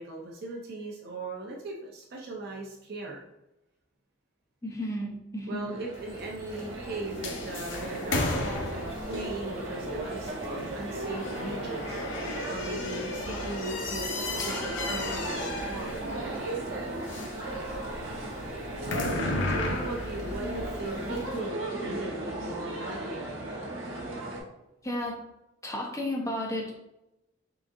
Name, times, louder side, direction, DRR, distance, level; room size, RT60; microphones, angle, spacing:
voice 1, 0.0-3.2 5.5-8.4 8.7-12.0 12.5-16.0 19.5-23.2, right 2 dB, 55° right, -1 dB, 0.5 m, -38 dB
voice 2, 4.6-5.8 24.8-25.2 25.6-26.7, left 1 dB, 15° left, -2 dB, 0.6 m, -33 dB
sound 1, 5.6-24.4, right 1 dB, 70° right, 1.1 m, -36 dB
sound 2, 5.9-21.4, left 2 dB, 65° left, 0.6 m, -35 dB
3.8 x 3.5 x 2.6 m, 0.90 s
head